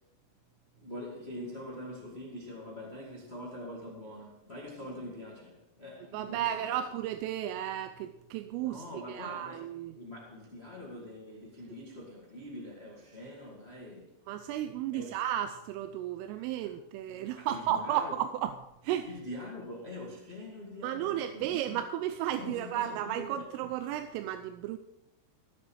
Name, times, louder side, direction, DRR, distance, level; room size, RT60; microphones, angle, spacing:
voice 1, 0.8-6.8 8.6-9.7 9.9-14.2 14.9-15.2 16.6-16.7 17.3-18.1 19.0-21.9 22.3-23.5, left 1 dB, 75° left, 0.5 m, -44 dB
voice 2, 6.1-10.0 14.3-18.5 18.8-19.1 20.8-24.8, right 11 dB, 85° right, 3.3 m, -33 dB
16.0 x 7.1 x 6.4 m
omnidirectional pair, 5.7 m